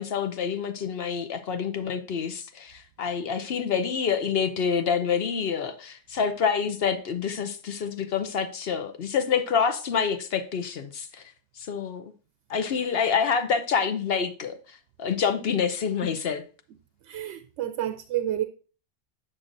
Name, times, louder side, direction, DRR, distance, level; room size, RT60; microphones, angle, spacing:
voice 1, 0.0-11.2 11.6-12.1 12.5-16.4, left 6 dB, 60° left, 0.8 m, -27 dB
voice 2, 17.1-18.4, right 12 dB, 80° right, 0.9 m, -29 dB
8.6 x 6.3 x 2.6 m
omnidirectional pair, 1.2 m